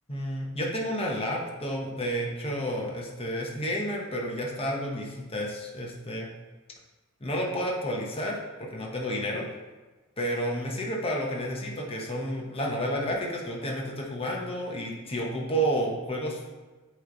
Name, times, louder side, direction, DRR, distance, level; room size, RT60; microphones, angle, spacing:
voice 1, 0.1-6.3 7.2-9.5 10.2-16.4, equal, 25° left, -1 dB, 1.0 m, -31 dB
8.5 x 3.2 x 3.9 m, 1.2 s
head